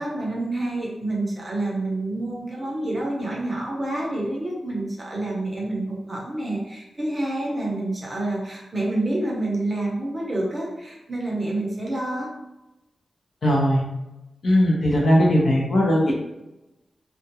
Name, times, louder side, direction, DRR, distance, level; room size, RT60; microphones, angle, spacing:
voice 1, 0.0-12.3, right 2 dB, 25° right, -4 dB, 0.7 m, -28 dB
voice 2, 13.4-13.8 14.4-16.1, equal, 60° left, -3 dB, 0.7 m, -19 dB
2.4 x 2.1 x 2.8 m, 0.95 s
wide cardioid pair, 170°, 0 cm